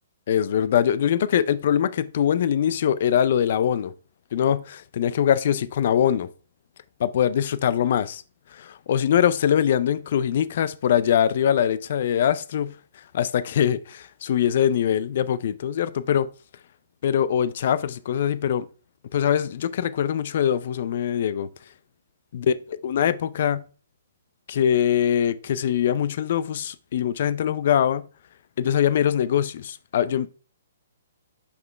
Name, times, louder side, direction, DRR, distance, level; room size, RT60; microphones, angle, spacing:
voice 1, 0.3-3.9 4.3-6.3 7.0-8.2 8.5-12.8 13.1-16.3 17.0-18.7 19.1-21.5 22.3-22.5 22.8-23.6 24.5-28.1 28.6-30.3, left 9 dB, 55° left, 0.4 m, -22 dB
5.7 x 5.5 x 3.2 m
figure-of-eight pair, 125°, 0 cm